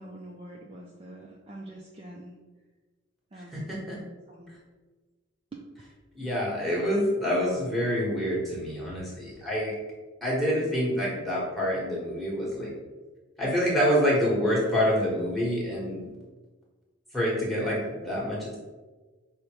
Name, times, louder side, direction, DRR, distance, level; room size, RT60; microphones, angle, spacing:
voice 1, 0.0-2.4 3.3-3.7 4.3-4.5 5.5-5.6, right 1 dB, 25° right, -3 dB, 0.4 m, -44 dB
voice 2, 3.3-4.0 4.5-4.6 6.1-9.7 10.2-12.7 13.4-16.1 17.1-18.6, equal, ahead, -5 dB, 1.1 m, -27 dB
5.0 x 2.2 x 4.4 m, 1.3 s
head